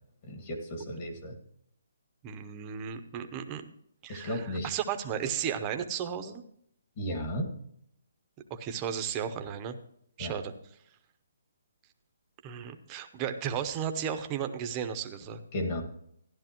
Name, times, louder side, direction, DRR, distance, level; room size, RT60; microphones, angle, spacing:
voice 1, 0.2-1.3 4.1-4.7 7.0-7.5 10.2-10.3 15.5-15.8, equal, 30° left, 3 dB, 1.8 m, -34 dB
voice 2, 2.2-3.6 4.0-6.4 8.5-9.8 10.2-10.5 12.4-15.4, right 8 dB, 20° right, 7 dB, 0.7 m, -34 dB
13.5 x 11.0 x 3.0 m, 0.69 s
hypercardioid pair, 170°, 0 cm